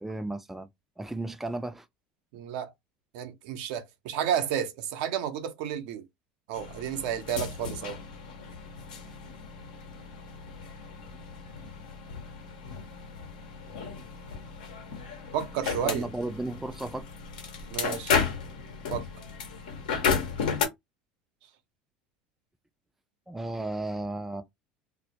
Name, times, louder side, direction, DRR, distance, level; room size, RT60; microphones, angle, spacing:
voice 1, 0.0-0.7 1.0-1.9 9.1-9.2 15.8-17.0 23.3-24.4, right 2 dB, 5° right, 0.4 m, -34 dB
voice 2, 2.3-2.7 3.1-6.0 6.5-8.0 15.3-16.1 17.7-18.2 18.9-19.0, right 9 dB, 70° right, 0.6 m, -31 dB
sound 1, 6.5-20.7, left 6 dB, 85° left, 0.8 m, -34 dB
2.1 x 2.1 x 2.7 m
hypercardioid pair, 85°, 4 cm